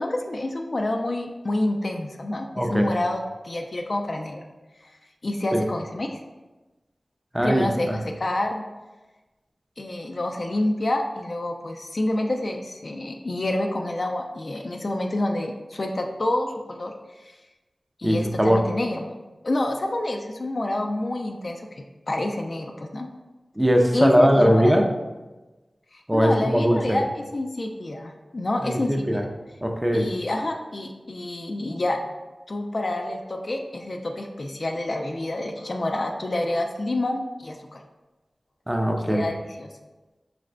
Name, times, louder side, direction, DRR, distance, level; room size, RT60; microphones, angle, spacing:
voice 1, 0.0-4.4 4.8-4.9 5.2-6.2 7.4-8.6 9.8-16.9 17.2-17.3 18.0-23.1 23.9-24.8 25.9-29.3 29.9-32.0 32.5-37.8 39.1-39.7, left 1 dB, 55° left, 3 dB, 0.3 m, -28 dB
voice 2, 2.6-2.9 5.5-5.6 7.3-7.7 18.0-18.6 23.6-24.8 26.1-27.0 28.6-29.2 29.6-30.1 38.7-39.3, equal, 10° right, 2 dB, 0.5 m, -20 dB
4.1 x 2.5 x 3.2 m, 1.2 s
wide cardioid pair, 65°, 0 cm